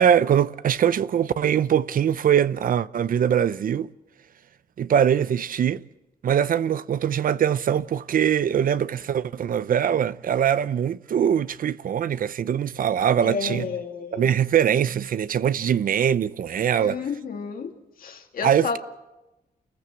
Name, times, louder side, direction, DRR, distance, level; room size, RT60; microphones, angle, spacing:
voice 1, 0.0-3.9 4.8-5.8 6.2-13.7 14.1-17.0 18.4-18.8, right 9 dB, 65° right, 0.7 m, -22 dB
voice 2, 13.2-14.4 16.7-17.7 18.0-18.8, left 5 dB, 70° left, 2.5 m, -31 dB
28.5 x 15.0 x 7.8 m
wide cardioid pair, 115°, 15 cm